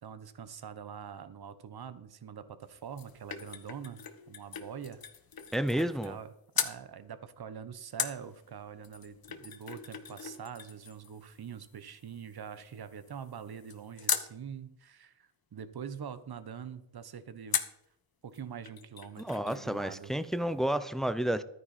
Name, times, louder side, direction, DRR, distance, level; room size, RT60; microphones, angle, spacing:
voice 1, 0.0-5.0 5.8-6.3 6.6-17.6 18.2-20.1, right 7 dB, 55° right, 13 dB, 1.2 m, -44 dB
sound 1, 2.6-6.3 6.5-6.8 8.0-14.3 17.5-17.9 18.3-18.4 18.7-19.7 19.9-20.0, left 7 dB, 50° left, 1.2 m, -39 dB
voice 2, 5.5-6.2 19.2-21.4, right 1 dB, ahead, 14 dB, 0.7 m, -31 dB
12.5 x 9.5 x 4.3 m, 0.75 s
cardioid pair, 75°, 46 cm